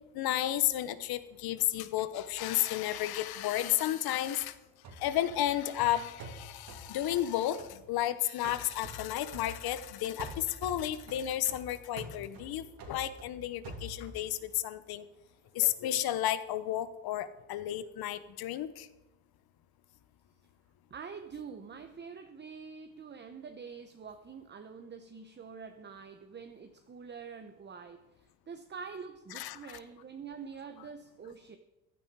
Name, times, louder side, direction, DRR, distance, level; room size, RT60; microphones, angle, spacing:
voice 1, 0.1-4.6 4.9-15.0 15.5-18.9 29.3-29.6, left 12 dB, 80° left, 1.0 m, -32 dB
sound 1, 4.8-8.1 8.4-9.9 10.2-14.3, right 1 dB, 70° right, 2.8 m, -47 dB
voice 2, 20.9-31.6, right 6 dB, 30° right, 0.9 m, -46 dB
15.0 x 11.0 x 4.7 m
cardioid pair, 110°, 37 cm